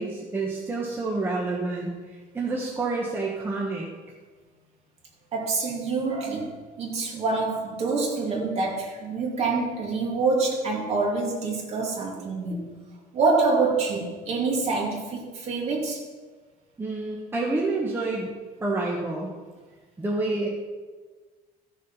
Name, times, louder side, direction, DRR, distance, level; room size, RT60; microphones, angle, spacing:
voice 1, 0.0-3.9 16.8-18.3 18.6-19.3 20.0-20.5, right 3 dB, 15° right, -3 dB, 1.3 m, -28 dB
voice 2, 5.3-12.7 13.1-16.0, right 3 dB, 40° right, -1 dB, 2.8 m, -26 dB
14.5 x 6.9 x 5.7 m, 1.4 s
cardioid pair, 170°, 16 cm